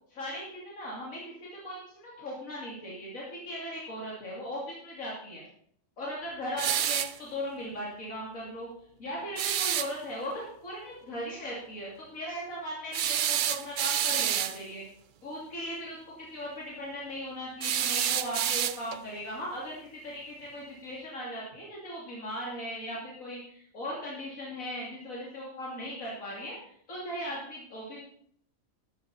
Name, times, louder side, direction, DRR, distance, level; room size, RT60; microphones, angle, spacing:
voice 1, 0.1-5.4 6.0-8.7 9.0-14.8 15.2-28.0, equal, 85° left, -5 dB, 3.2 m, -38 dB
sound 1, 6.6-7.2 9.4-9.9 12.9-14.6 17.6-19.0, right 10 dB, 70° right, 0.4 m, -28 dB
13.5 x 9.1 x 4.2 m, 0.65 s
omnidirectional pair, 1.4 m